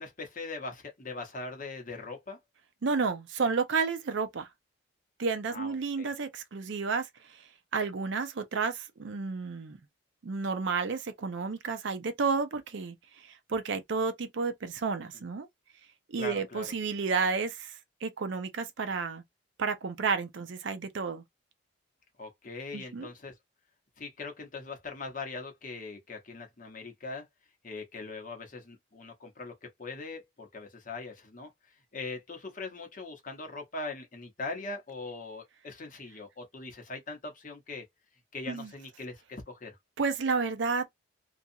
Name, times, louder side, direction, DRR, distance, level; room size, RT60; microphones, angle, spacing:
voice 1, 0.0-2.4 5.5-6.1 16.2-16.7 22.2-23.3 24.0-27.2 27.6-31.5 31.9-37.8 38.3-39.8, left 3 dB, 40° left, 0.8 m, -41 dB
voice 2, 2.8-4.5 5.2-7.1 7.7-9.8 10.2-13.0 13.2-15.5 16.1-17.7 18.0-19.2 19.6-21.2 22.7-23.1 38.5-38.7 40.0-40.8, right 4 dB, 60° right, 0.5 m, -31 dB
2.6 x 2.3 x 2.6 m
head